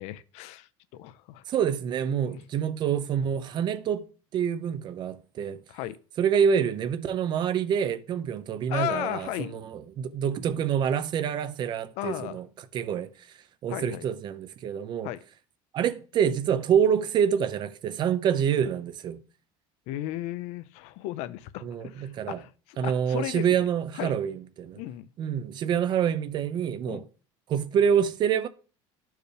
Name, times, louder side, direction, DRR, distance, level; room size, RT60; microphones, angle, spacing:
voice 1, 0.0-1.4 2.2-2.4 5.7-6.0 8.7-9.6 12.0-12.4 13.7-14.1 15.0-15.2 19.9-23.7 23.9-24.2 24.8-25.1 26.9-27.1, left 14 dB, 70° left, 0.5 m, -35 dB
voice 2, 1.5-4.1 4.3-5.6 6.2-12.5 12.7-13.1 13.6-15.1 15.7-19.2 21.6-22.4 22.8-24.8 25.2-27.1 27.5-28.5, right 8 dB, 40° right, 0.6 m, -26 dB
11.5 x 4.6 x 3.3 m
cardioid pair, 140°, 12 cm